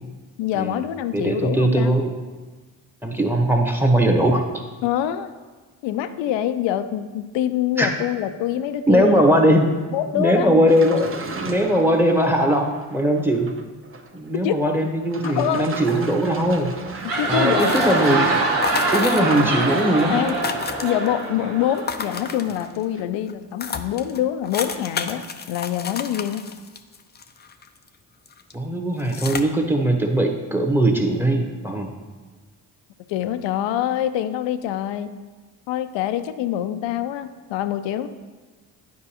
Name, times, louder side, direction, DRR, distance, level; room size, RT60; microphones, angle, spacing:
voice 1, 0.4-1.9 4.8-5.3 5.8-9.2 9.9-10.5 14.4-14.6 15.2-15.6 17.2-17.9 20.1-20.4 20.8-25.2 25.5-26.4 33.1-35.1 35.7-38.1, left 11 dB, 70° left, 10 dB, 0.6 m, -25 dB
voice 2, 1.1-2.1 3.0-4.4 7.8-7.9 8.9-9.7 10.1-13.5 14.1-16.7 17.3-18.3 18.9-20.3 28.5-31.9, right 1 dB, 5° right, 2 dB, 1.2 m, -20 dB
sound 1, 10.7-14.3 14.6-14.7 15.0-22.7 22.9-23.0, right 4 dB, 30° right, 0.7 m, -36 dB
sound 2, 16.8-22.4, right 2 dB, 85° right, 1.3 m, -24 dB
sound 3, 17.6-18.2 18.6-19.6 19.8-19.9 20.1-21.2 21.7-22.8 23.3-23.4 23.6-27.9 28.3-28.5 29.0-29.4, left 5 dB, 25° left, 0.5 m, -31 dB
9.4 x 4.6 x 3.0 m, 1.3 s
hypercardioid pair, 50°, 46 cm